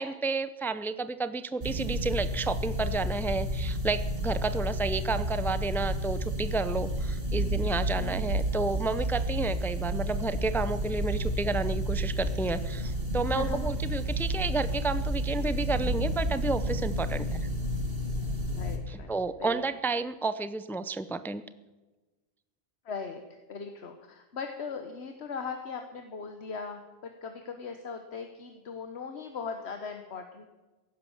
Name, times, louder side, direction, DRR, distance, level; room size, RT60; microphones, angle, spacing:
voice 1, 0.0-17.5 18.9-21.4, right 3 dB, 5° left, 12 dB, 0.4 m, -31 dB
sound 1, 1.6-18.8, equal, 60° right, 2.1 m, -31 dB
voice 2, 13.3-13.7 17.1-17.2 18.5-19.1 19.4-19.6 22.8-23.2 23.5-30.5, left 5 dB, 80° left, 5 dB, 1.4 m, -39 dB
15.5 x 11.5 x 7.2 m, 1.2 s
omnidirectional pair, 1.1 m